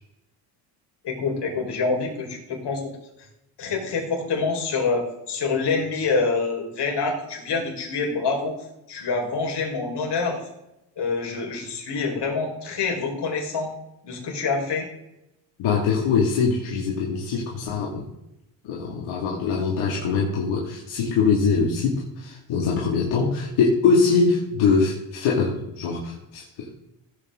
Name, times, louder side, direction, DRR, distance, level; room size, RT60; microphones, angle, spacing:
voice 1, 1.0-2.9 3.6-8.5 8.9-10.4 11.0-13.7 14.0-14.9, left 4 dB, 55° left, 0 dB, 4.9 m, -26 dB
voice 2, 15.6-18.1 18.6-26.7, left 5 dB, 75° left, -3 dB, 2.6 m, -23 dB
16.5 x 8.5 x 3.8 m, 0.87 s
supercardioid pair, 80°, 49 cm